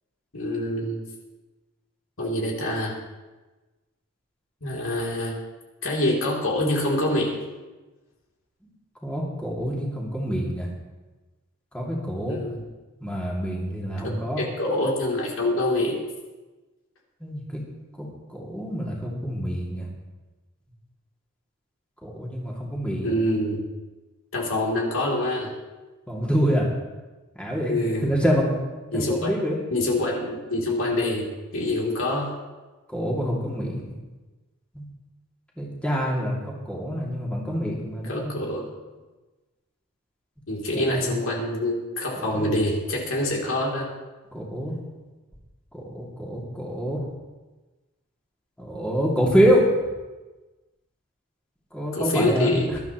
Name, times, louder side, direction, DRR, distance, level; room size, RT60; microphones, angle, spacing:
voice 1, 0.3-1.0 2.2-3.0 4.6-5.4 5.8-7.4 12.3-12.6 14.0-14.1 14.4-16.0 23.0-23.6 24.3-25.5 27.7-28.1 28.9-29.3 29.7-32.4 38.1-38.6 40.5-43.9 51.9-52.7, left 1 dB, 65° left, -2 dB, 3.2 m, -25 dB
voice 2, 9.0-10.7 11.7-12.4 13.0-14.4 17.2-17.6 18.0-18.1 18.3-19.9 22.0-23.1 26.1-26.7 27.4-27.7 28.0-28.5 28.9-29.6 30.8-30.9 32.9-33.9 34.7-34.8 35.6-38.4 40.7-41.0 42.2-42.5 44.3-44.8 45.7-47.0 48.6-49.6 51.7-52.8, equal, 5° left, -4 dB, 2.6 m, -26 dB
21.0 x 12.5 x 3.1 m, 1.2 s
head